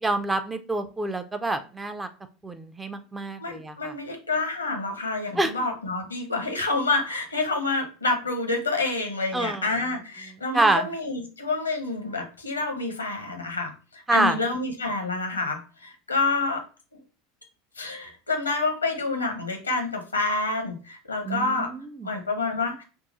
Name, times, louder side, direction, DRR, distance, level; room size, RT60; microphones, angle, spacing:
voice 1, 0.0-2.1 2.4-3.9 5.4-5.5 9.3-9.6 10.5-10.9 14.1-14.4 21.2-22.1, right 2 dB, 15° right, 8 dB, 0.5 m, -26 dB
voice 2, 3.4-16.6 17.8-21.7 22.0-22.8, left 3 dB, 85° left, 5 dB, 0.8 m, -28 dB
3.6 x 2.3 x 3.9 m, 0.35 s
figure-of-eight pair, 75°, 0 cm